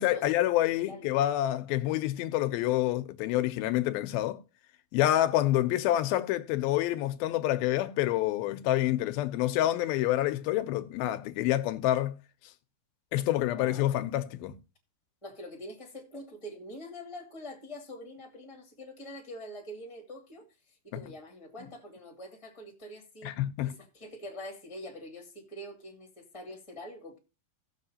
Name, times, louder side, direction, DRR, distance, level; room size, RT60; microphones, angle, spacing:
voice 1, 0.0-4.4 4.9-12.2 13.1-14.5 23.2-23.7, left 14 dB, 85° left, 2.6 m, -27 dB
voice 2, 13.5-13.9 15.2-20.4 20.8-23.4 23.6-27.2, equal, 10° left, 2.0 m, -44 dB
17.0 x 7.4 x 2.8 m
omnidirectional pair, 4.2 m